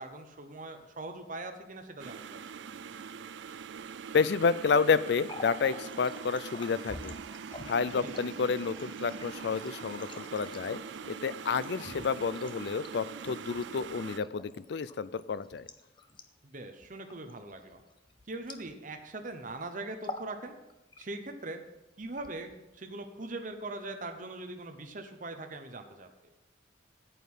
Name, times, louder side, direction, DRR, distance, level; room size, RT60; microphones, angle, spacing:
voice 1, 0.0-2.4 8.0-8.2 16.4-17.8 18.3-20.6 21.0-21.6 22.0-26.1, right 2 dB, 45° right, 5 dB, 0.9 m, -41 dB
sound 1, 2.0-14.2, right 6 dB, 70° right, 0.4 m, -43 dB
voice 2, 4.1-7.1 7.7-10.8 11.1-15.7, left 5 dB, 60° left, 17 dB, 0.4 m, -30 dB
Water tap faucet, 5.1-19.1 19.4-19.6 19.9-20.4 20.7-21.4 22.0-22.8, left 2 dB, 25° left, 0.7 m, -48 dB
9.2 x 8.3 x 5.6 m, 0.96 s
head